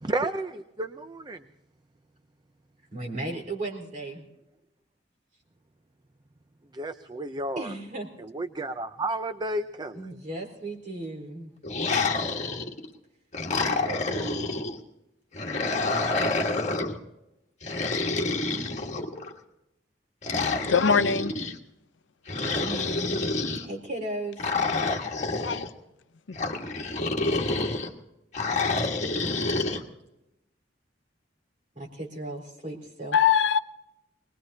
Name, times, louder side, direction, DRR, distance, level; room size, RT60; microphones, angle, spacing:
voice 1, 0.0-1.4 6.7-7.7 8.2-10.1, right 2 dB, 25° right, 0.5 m, -32 dB
voice 2, 2.9-4.3 7.6-8.1 9.9-11.5 13.5-14.5 22.3-23.2 23.6-24.5 31.7-33.2, right 2 dB, 45° right, 4.2 m, -36 dB
sound 1, 11.6-12.9 13.3-14.8 15.3-17.0 17.6-19.3 20.2-21.5 22.3-23.6 24.4-25.7 26.3-27.9 28.3-29.8, left 3 dB, 40° left, 1.5 m, -28 dB
voice 3, 20.7-21.3 25.4-25.7 26.3-26.4 33.1-33.6, left 7 dB, 85° left, 0.6 m, -22 dB
24.5 x 20.5 x 2.8 m
head